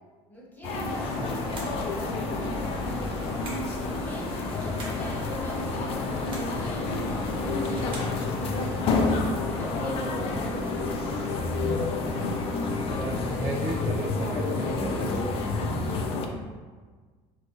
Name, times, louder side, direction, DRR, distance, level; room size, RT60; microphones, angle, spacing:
voice 1, 0.3-1.3 3.3-11.1 14.6-14.9, left 1 dB, 15° left, -4 dB, 0.8 m, -42 dB
sound 1, 0.6-16.3, left 3 dB, 50° left, 0.4 m, -29 dB
sound 2, 0.9-13.4, left 1 dB, 85° left, 0.9 m, -40 dB
sound 3, 1.3-1.9 3.2-3.8 4.5-5.0 6.0-6.6 7.4-8.2, right 2 dB, 40° right, 0.8 m, -43 dB
voice 2, 2.8-3.5 7.4-8.0 12.1-16.2, right 2 dB, 25° right, -3 dB, 0.3 m, -36 dB
3.4 x 2.4 x 2.7 m, 1.4 s
cardioid pair, 120°, 12 cm